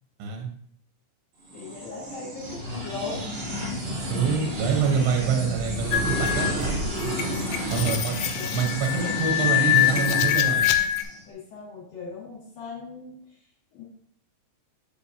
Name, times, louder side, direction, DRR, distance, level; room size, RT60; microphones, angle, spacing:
voice 1, 1.5-3.2 8.4-8.5 11.3-13.4 13.7-13.8, left 4 dB, 60° left, -7 dB, 2.5 m, -38 dB
sound 1, 1.5-11.2, equal, 65° right, 1.3 m, -31 dB
voice 2, 4.1-6.8 7.7-8.2 8.5-10.7, right 6 dB, 80° right, 1 dB, 2.3 m, -26 dB
sound 2, 5.9-11.0, left 12 dB, 85° left, 2.7 m, -25 dB
6.6 x 5.3 x 2.8 m, 0.64 s
omnidirectional pair, 5.8 m